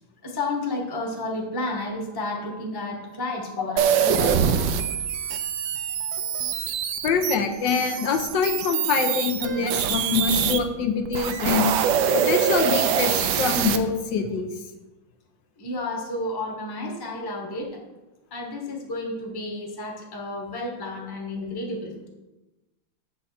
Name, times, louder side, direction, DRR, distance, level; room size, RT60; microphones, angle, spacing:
voice 1, 0.2-5.3 15.6-17.8 18.3-22.1, left 2 dB, 15° left, 0 dB, 1.0 m, -32 dB
sound 1, 3.8-10.6 11.0-13.8, right 8 dB, 75° right, 1.3 m, -24 dB
voice 2, 7.0-11.7 12.1-14.5, left 5 dB, 70° left, 5 dB, 1.5 m, -24 dB
7.7 x 7.0 x 4.3 m, 1.0 s
omnidirectional pair, 2.2 m